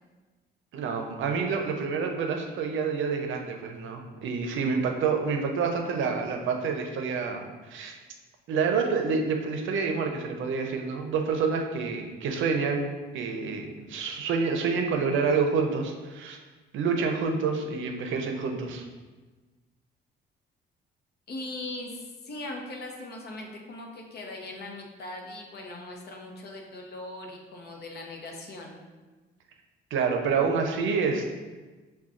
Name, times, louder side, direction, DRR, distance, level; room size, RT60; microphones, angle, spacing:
voice 1, 0.7-7.4 7.7-7.9 8.5-16.4 16.7-18.8 29.9-31.3, right 5 dB, 75° right, 4 dB, 0.6 m, -28 dB
voice 2, 21.3-28.8, left 2 dB, 55° left, 1 dB, 0.8 m, -40 dB
6.7 x 2.3 x 2.5 m, 1.3 s
cardioid pair, 90°, 20 cm